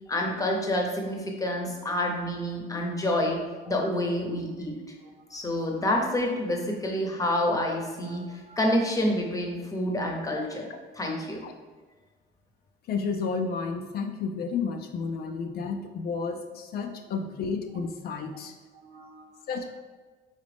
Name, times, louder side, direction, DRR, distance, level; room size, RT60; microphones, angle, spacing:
voice 1, 0.1-4.8 5.3-10.7 10.9-11.4, left 1 dB, 20° left, 0 dB, 0.8 m, -28 dB
voice 2, 5.0-5.6 8.0-8.7 16.8-16.9 18.7-19.5, right 2 dB, 30° right, 3 dB, 0.4 m, -53 dB
voice 3, 12.9-18.5 19.5-19.7, left 5 dB, 55° left, 6 dB, 0.4 m, -31 dB
4.0 x 3.9 x 3.4 m, 1.4 s
cardioid pair, 125°, 19 cm